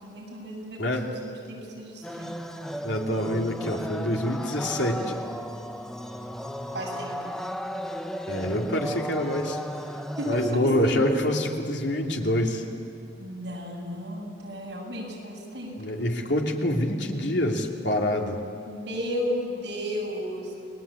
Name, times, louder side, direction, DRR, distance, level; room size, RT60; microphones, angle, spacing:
voice 1, 0.0-0.8 1.2-2.4 6.7-7.4 10.2-11.0 13.2-16.0 18.7-20.5, equal, 70° right, -2 dB, 7.7 m, -34 dB
voice 2, 0.8-1.1 2.8-5.2 8.3-9.6 10.3-12.6 15.8-18.4, left 1 dB, 80° left, 1 dB, 2.8 m, -26 dB
sound 1, 2.0-10.6, equal, 5° left, 0.9 m, -35 dB
29.0 x 21.0 x 8.5 m, 2.6 s
head